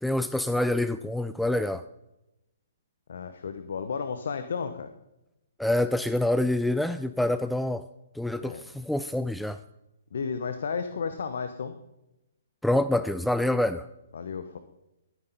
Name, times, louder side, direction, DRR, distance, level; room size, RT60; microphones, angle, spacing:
voice 1, 0.0-1.8 5.6-7.8 8.1-9.6 12.6-13.9, left 1 dB, ahead, 12 dB, 0.3 m, -26 dB
voice 2, 3.1-4.9 8.4-8.6 10.1-11.8 14.1-14.6, left 5 dB, 60° left, 9 dB, 0.9 m, -33 dB
13.5 x 9.5 x 4.0 m, 0.91 s
figure-of-eight pair, 125°, 0 cm